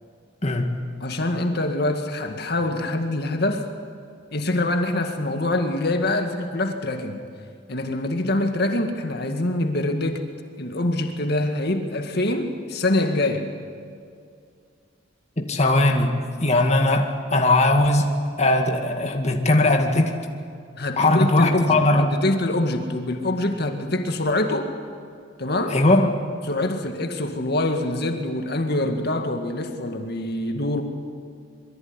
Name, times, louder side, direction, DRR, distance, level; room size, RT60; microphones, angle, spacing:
voice 1, 0.4-0.9 15.4-16.1 16.4-20.2 21.0-22.1 25.7-26.1, left 2 dB, 35° left, 3 dB, 2.1 m, -19 dB
voice 2, 1.0-3.7 4.3-7.2 7.7-10.3 10.6-13.5 20.8-24.7 25.4-25.8 26.4-30.8, left 1 dB, 55° left, 5 dB, 2.1 m, -25 dB
26.0 x 23.0 x 9.9 m, 2.3 s
head